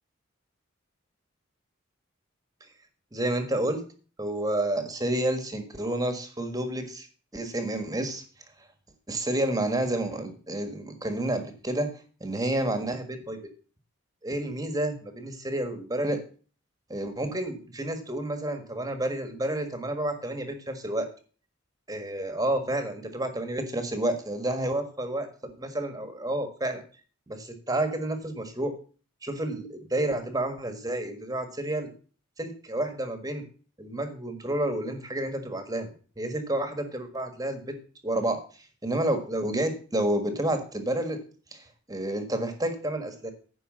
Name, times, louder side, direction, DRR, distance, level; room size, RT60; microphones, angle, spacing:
voice 1, 3.1-3.8 4.2-7.1 7.3-8.2 9.1-13.4 14.2-16.2 16.9-21.1 21.9-26.8 27.3-28.7 29.2-31.9 32.4-33.4 33.8-37.7 38.0-38.4 38.8-41.2 41.5-43.3, right 1 dB, 20° right, 7 dB, 1.5 m, -30 dB
10.0 x 5.0 x 7.4 m, 0.40 s
head